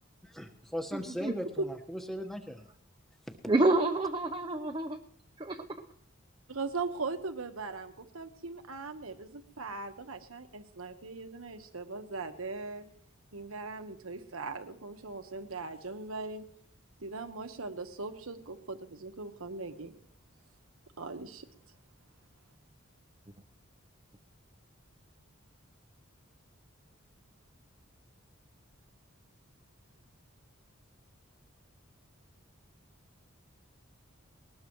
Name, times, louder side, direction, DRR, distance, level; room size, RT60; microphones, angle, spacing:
voice 1, 0.2-2.7, equal, ahead, 3 dB, 1.3 m, -38 dB
voice 2, 0.9-1.3 3.5-5.0 5.4-5.6, right 2 dB, 25° right, 4 dB, 0.8 m, -28 dB
voice 3, 6.5-12.8 13.3-16.4 17.0-19.9 21.0-21.5, right 3 dB, 90° right, 7 dB, 1.3 m, -39 dB
20.5 x 19.0 x 3.1 m, 0.70 s
head